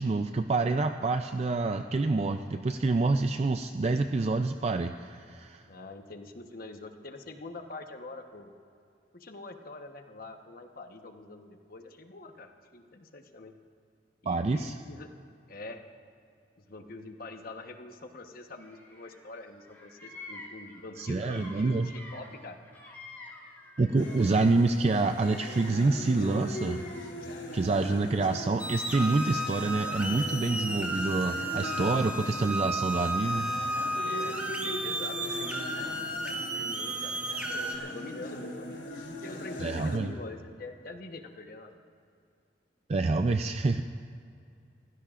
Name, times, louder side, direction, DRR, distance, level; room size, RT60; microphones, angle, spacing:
voice 1, 0.0-5.6 14.3-14.8 21.0-21.9 23.8-26.8 27.5-33.5 39.6-40.1 42.9-43.8, right 3 dB, 35° right, 7 dB, 0.4 m, -27 dB
voice 2, 5.7-8.5 9.1-13.5 14.2-15.1 15.5-15.8 16.6-22.6 33.9-41.7, left 2 dB, 50° left, 5 dB, 1.1 m, -45 dB
Bird vocalization bird call bird song, 18.5-19.3 19.5-24.6 24.9-27.3 27.8-28.8 29.5-30.6, left 2 dB, 10° left, 2.4 m, -50 dB
sound 1, 24.0-40.0, left 1 dB, 90° left, 2.3 m, -40 dB
sound 2, 28.6-37.8, right 1 dB, 10° right, 1.5 m, -33 dB
29.0 x 16.0 x 2.5 m, 2.4 s
head